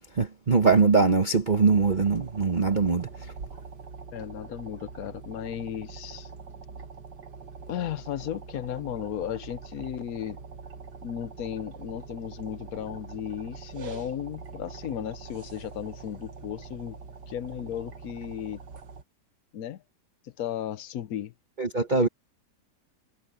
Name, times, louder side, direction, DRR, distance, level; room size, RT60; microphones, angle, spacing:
voice 1, 0.1-3.3 21.6-22.1, right 4 dB, 30° right, 1.1 m, -22 dB
sound 1, 1.5-19.0, right 5 dB, 75° right, 2.2 m, -43 dB
voice 2, 4.1-6.3 7.7-10.4 11.0-17.0 17.3-18.6 19.5-19.8 20.2-21.3, left 10 dB, 65° left, 1.2 m, -35 dB
omnidirectional pair, 1.8 m